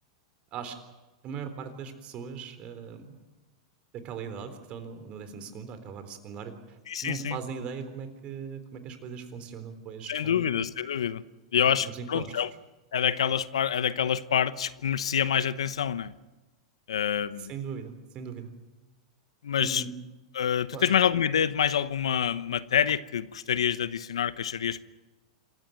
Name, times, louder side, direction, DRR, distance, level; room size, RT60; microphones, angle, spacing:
voice 1, 1.2-3.2 3.9-10.5 11.6-12.4 17.4-18.5 19.6-19.9 20.7-20.9, right 6 dB, 40° right, 9 dB, 3.8 m, -39 dB
voice 2, 6.9-7.4 10.1-11.2 11.5-12.5 12.9-16.1 16.9-17.5 19.4-19.8 20.3-24.8, left 8 dB, 80° left, 16 dB, 0.9 m, -27 dB
26.5 x 15.0 x 9.3 m, 1.1 s
hypercardioid pair, 105°, 3 cm